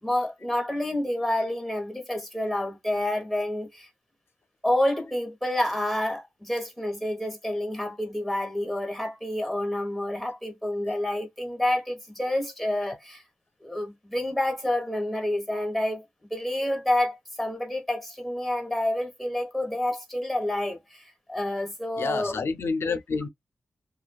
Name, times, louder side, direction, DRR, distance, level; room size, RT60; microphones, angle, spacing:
voice 1, 0.0-3.9 4.6-13.2 13.6-22.4, left 1 dB, ahead, 1.0 m, -28 dB
voice 2, 22.0-23.3, left 4 dB, 70° left, 0.4 m, -28 dB
2.4 x 2.2 x 2.3 m
cardioid pair, 65°, 4 cm